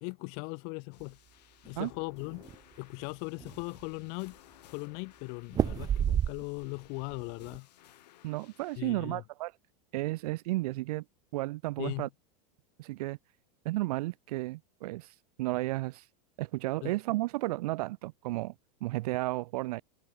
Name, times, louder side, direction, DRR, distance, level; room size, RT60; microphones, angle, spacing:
voice 1, 0.0-1.2 1.6-2.4 2.8-4.4 4.6-7.7 8.8-9.2 11.8-12.1 16.8-16.9, left 38 dB, 50° left, 1.1 m, -39 dB
sound 1, 0.9-8.8, left 14 dB, 80° left, 6.2 m, -59 dB
sound 2, 1.6-2.5 3.0-3.1 3.4-4.0 5.5-6.8 7.1-7.6, right 9 dB, 20° right, 0.4 m, -30 dB
voice 2, 8.2-9.5 9.9-11.0 11.3-12.1 12.8-13.2 13.6-16.0 16.4-18.5 18.8-19.8, right 19 dB, 70° right, 0.5 m, -33 dB
supercardioid pair, 140°, 21 cm